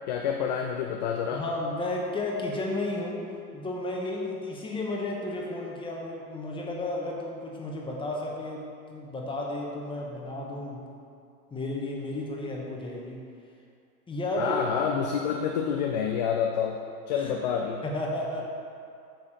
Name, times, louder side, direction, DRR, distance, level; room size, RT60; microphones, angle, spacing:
voice 1, 0.1-1.4 14.4-16.8 17.1-17.8, left 7 dB, 30° left, 2 dB, 0.4 m, -28 dB
voice 2, 1.3-3.2 3.5-8.6 8.9-10.8 11.5-13.2 14.1-14.6 17.1-17.3 17.8-18.5, left 2 dB, 10° left, -2 dB, 1.3 m, -33 dB
8.5 x 7.1 x 4.4 m, 2.4 s
figure-of-eight pair, 100°, 49 cm